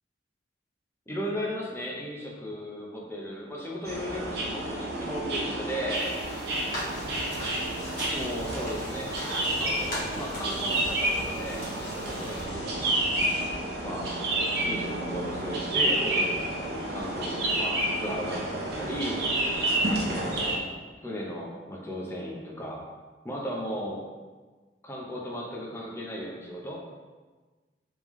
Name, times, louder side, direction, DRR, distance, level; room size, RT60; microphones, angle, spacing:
voice 1, 1.1-6.0 8.1-9.1 9.5-13.2 13.8-14.1 14.6-19.2 20.0-20.6 21.0-22.9 23.2-24.1 24.8-26.8, equal, 15° left, -3 dB, 0.6 m, -36 dB
sound 1, 3.9-20.6, right 1 dB, 60° right, 0.7 m, -30 dB
sound 2, 5.9-12.4, left 1 dB, 50° left, 1.3 m, -40 dB
sound 3, 6.9-13.8, left 1 dB, 80° left, 1.2 m, -44 dB
3.6 x 3.3 x 3.1 m, 1.3 s
head